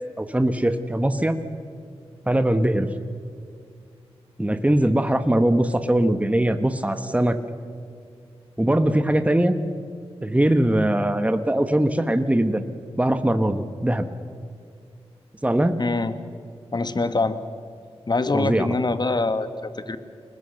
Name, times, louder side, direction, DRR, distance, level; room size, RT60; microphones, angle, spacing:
voice 1, 0.2-1.3 2.3-2.9 4.4-7.4 8.6-9.6 10.2-12.6 13.0-14.1 15.4-15.8 18.3-18.7, right 1 dB, 10° right, 9 dB, 1.4 m, -21 dB
voice 2, 15.8-16.1 16.7-17.4 18.1-20.0, left 3 dB, 40° left, 11 dB, 1.5 m, -24 dB
23.5 x 20.5 x 6.6 m, 2.3 s
cardioid pair, 45°, 11 cm